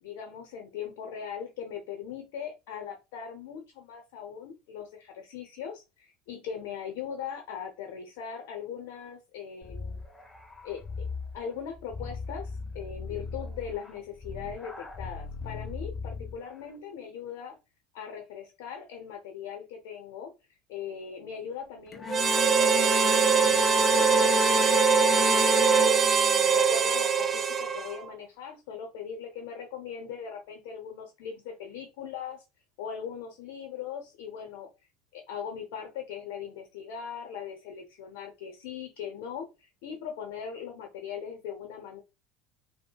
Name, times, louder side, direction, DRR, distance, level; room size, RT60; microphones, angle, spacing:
voice 1, 0.0-10.0 10.6-11.1 11.3-17.6 17.9-25.9 26.4-32.5 32.8-34.7 35.1-42.0, left 7 dB, 70° left, 4 dB, 0.7 m, -40 dB
sound 1, 9.6-16.5, left 4 dB, 15° left, 1.1 m, -39 dB
Bowed string instrument, 21.9-26.6, left 3 dB, 30° left, 0.6 m, -29 dB
Harmonica, 22.1-28.1, right 7 dB, 30° right, 0.5 m, -23 dB
5.0 x 2.1 x 2.3 m, 0.27 s
hypercardioid pair, 80°, 0 cm